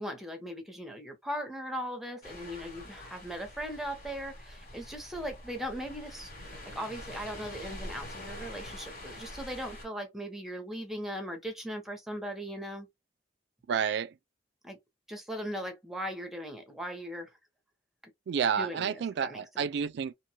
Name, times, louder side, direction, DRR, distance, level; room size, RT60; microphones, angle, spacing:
voice 1, 0.0-12.9 14.6-14.8 15.1-17.3 18.6-19.7, equal, ahead, 0.8 m, -39 dB
sound 1, 2.2-9.9, left 1 dB, 55° left, 1.3 m, -45 dB
voice 2, 13.7-14.1 18.3-20.1, right 7 dB, 65° right, 0.3 m, -30 dB
2.8 x 2.2 x 2.9 m
head